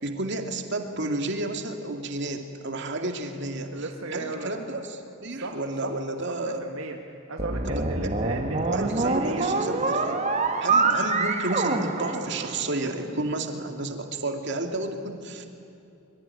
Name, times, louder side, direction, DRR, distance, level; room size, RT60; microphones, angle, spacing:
voice 1, 0.0-4.8 5.2-6.6 7.6-8.3 8.7-10.2 10.6-15.5, right 2 dB, 55° right, 5 dB, 2.4 m, -31 dB
voice 2, 3.7-4.5 5.3-5.9 6.3-9.6, right 2 dB, 70° right, 2 dB, 1.8 m, -36 dB
sound 1, 7.4-12.9, right 3 dB, 35° right, 1.7 m, -26 dB
24.5 x 23.5 x 9.8 m, 2.7 s
head